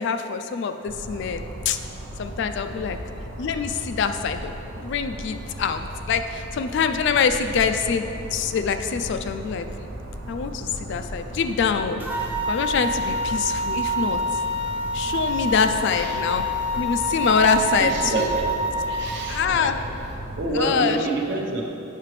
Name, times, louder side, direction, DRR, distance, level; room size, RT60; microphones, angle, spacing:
voice 1, 0.0-1.8 2.2-3.0 3.4-4.5 4.8-9.7 10.3-12.0 12.5-14.2 14.9-16.4 16.8-18.3 19.3-19.8 20.5-21.0, left 6 dB, 55° left, 8 dB, 0.3 m, -24 dB
sound 1, 0.9-20.5, right 1 dB, 90° right, 0.7 m, -36 dB
sound 2, 12.0-19.2, right 1 dB, 10° right, 0.6 m, -27 dB
voice 2, 15.4-16.2 17.8-18.5 18.9-19.8 20.4-21.6, right 2 dB, 55° right, 1 dB, 0.8 m, -28 dB
7.5 x 5.7 x 3.2 m, 2.8 s
head